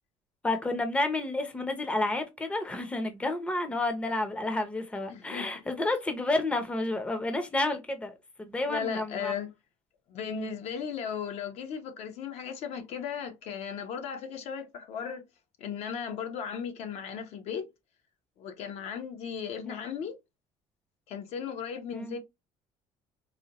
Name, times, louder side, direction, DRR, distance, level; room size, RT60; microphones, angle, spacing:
voice 1, 0.4-9.3 10.3-10.5 19.7-19.8 21.9-22.1, left 2 dB, 10° left, 0.6 m, -30 dB
voice 2, 5.1-5.5 8.7-9.5 10.1-15.3 15.6-17.7 18.4-20.2 21.1-22.2, left 7 dB, 60° left, 0.8 m, -36 dB
4.1 x 2.2 x 2.8 m
cardioid pair, 130°, 12 cm